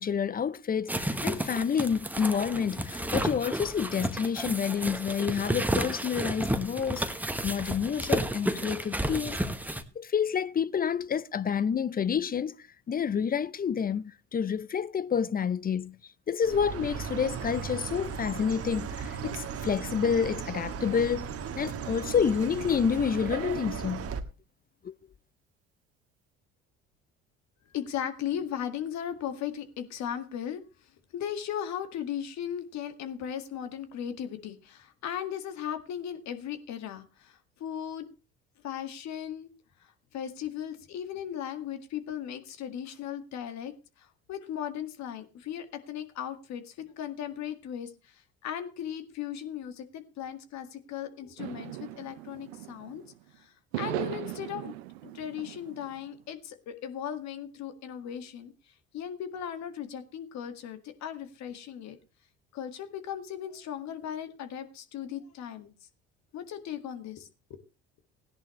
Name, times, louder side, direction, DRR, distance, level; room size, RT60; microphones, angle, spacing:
voice 1, 0.0-7.1 7.4-9.4 9.7-16.0 16.3-21.3 21.6-24.1 24.8-24.9, left 7 dB, 30° left, 0.6 m, -29 dB
sound 1, 0.9-9.8, right 1 dB, 5° right, 1.4 m, -32 dB
Chirp tweet, 16.4-24.2, right 7 dB, 50° right, 1.6 m, -36 dB
voice 2, 27.7-30.6 31.1-38.0 38.6-39.5 40.1-43.7 44.0-53.0 53.4-54.7 55.1-58.5 58.9-62.0 62.5-65.7 66.3-67.3, left 9 dB, 60° left, 1.9 m, -37 dB
sound 2, 51.4-53.1 53.7-56.0, right 16 dB, 80° right, 0.8 m, -38 dB
17.0 x 10.5 x 3.1 m
hypercardioid pair, 65°, 32 cm